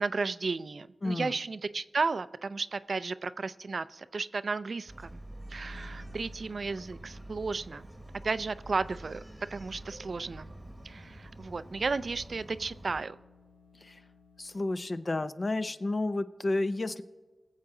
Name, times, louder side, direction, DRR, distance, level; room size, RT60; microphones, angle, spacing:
voice 1, 0.0-5.2 5.5-7.9 8.2-9.2 9.5-10.5 10.8-13.2, right 4 dB, 65° right, 15 dB, 0.4 m, -33 dB
voice 2, 1.0-1.3 13.8-14.0 14.4-17.0, left 2 dB, 45° left, 11 dB, 0.6 m, -31 dB
Bark, 4.9-13.1, right 1 dB, 20° right, 1.0 m, -47 dB
sound 1, 5.2-15.1, left 4 dB, 85° left, 1.2 m, -60 dB
20.0 x 7.4 x 3.8 m, 1.3 s
cardioid pair, 40°, 0 cm